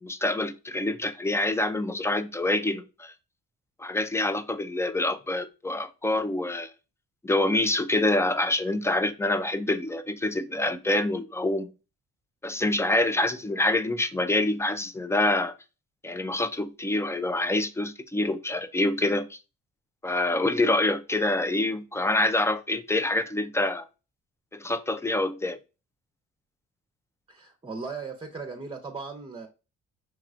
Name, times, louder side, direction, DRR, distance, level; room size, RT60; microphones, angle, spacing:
voice 1, 0.0-3.1 3.8-6.7 7.2-11.7 12.4-15.5 16.0-19.4 20.0-23.8 24.5-25.6, left 2 dB, 10° left, 0.5 m, -26 dB
voice 2, 27.3-29.5, right 4 dB, 15° right, 0.9 m, -37 dB
5.9 x 3.0 x 2.5 m
cardioid pair, 90°, 30 cm